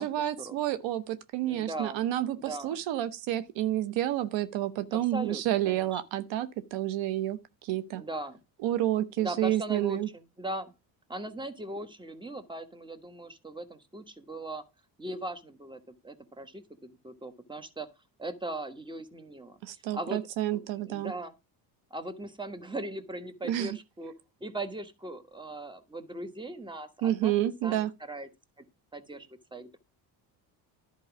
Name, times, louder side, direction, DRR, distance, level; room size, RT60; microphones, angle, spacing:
voice 1, 0.0-8.0 8.6-10.1 19.6-21.1 23.4-23.8 27.0-27.9, right 13 dB, 75° right, 0.9 m, -30 dB
voice 2, 1.4-2.0 2.3-2.8 4.9-6.0 7.9-8.4 9.2-10.7 11.1-14.6 15.0-17.9 18.2-19.6 19.9-20.2 20.5-21.3 21.9-24.1 24.4-28.3 28.9-29.8, right 1 dB, 10° right, 1.3 m, -39 dB
11.0 x 4.7 x 6.0 m
supercardioid pair, 90°, 45 cm